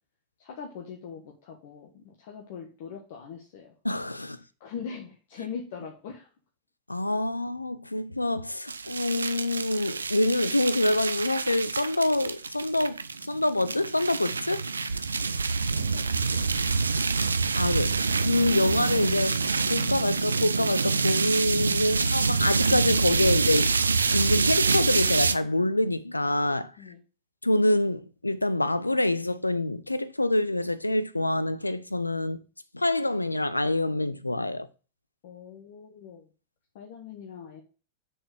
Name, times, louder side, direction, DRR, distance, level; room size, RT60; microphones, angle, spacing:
voice 1, 0.4-3.7 4.6-6.3 15.5-16.1 16.3-16.7 26.8-27.0 35.2-36.2 36.7-37.6, left 6 dB, 50° left, 1.3 m, -41 dB
voice 2, 3.8-4.4 6.9-14.6 17.5-23.7 24.1-26.7 27.4-32.4 32.7-34.7, left 1 dB, 85° left, 0.5 m, -26 dB
sound 1, 8.7-25.4, right 4 dB, 75° right, 0.4 m, -26 dB
6.6 x 4.3 x 6.4 m
figure-of-eight pair, 90°, 0 cm